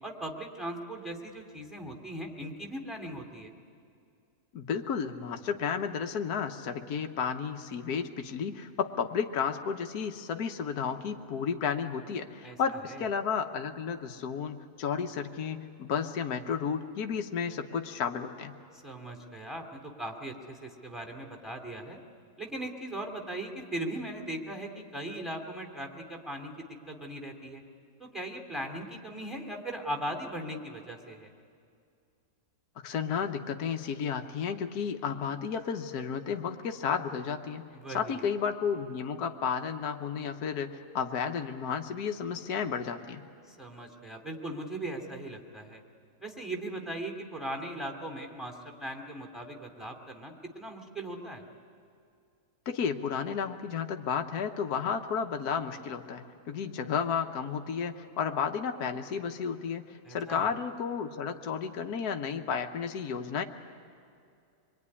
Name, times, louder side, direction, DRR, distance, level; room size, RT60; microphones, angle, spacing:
voice 1, 0.0-3.5 12.4-12.6 12.9-13.0 18.8-22.0 22.4-27.6 28.0-31.3 37.7-38.3 43.5-45.8 46.2-51.4 60.0-60.5, right 1 dB, ahead, 2 dB, 2.5 m, -39 dB
voice 2, 4.5-18.5 32.8-37.6 37.9-43.2 52.7-63.4, left 6 dB, 65° left, 5 dB, 1.5 m, -32 dB
25.0 x 23.0 x 9.8 m, 2.4 s
omnidirectional pair, 1.9 m